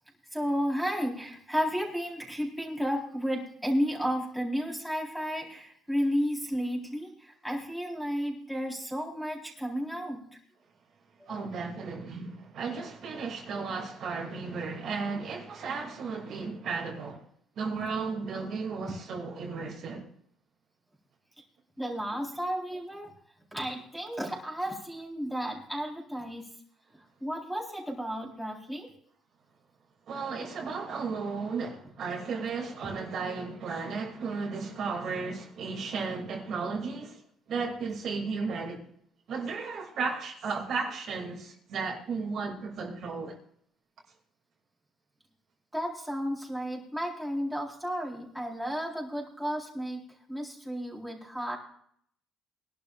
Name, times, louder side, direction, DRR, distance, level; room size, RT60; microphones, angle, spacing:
voice 1, 0.3-10.3 11.3-11.4 21.8-23.1 23.5-26.5 27.2-28.9 45.7-51.6, equal, ahead, 4.2 m, -33 dB
voice 2, 11.3-17.2 17.6-20.1 30.1-37.2 37.5-38.9 39.3-43.4, right 4 dB, 55° right, 2.7 m, -34 dB
22.0 x 12.0 x 2.5 m
cardioid pair, 125°, 0 cm